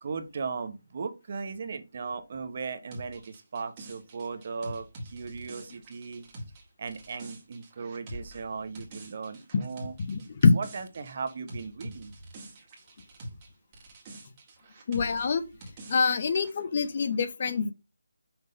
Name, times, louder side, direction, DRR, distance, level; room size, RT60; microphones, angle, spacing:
voice 1, 0.0-6.3 6.8-9.9 10.5-12.1, right 5 dB, 40° right, 0.9 m, -37 dB
sound 1, 2.9-13.5 13.7-16.6, right 1 dB, 20° right, 1.9 m, -45 dB
voice 2, 10.0-10.5 14.9-15.4 15.9-17.7, left 4 dB, 40° left, 0.9 m, -25 dB
6.0 x 3.6 x 5.4 m
figure-of-eight pair, 170°, 0 cm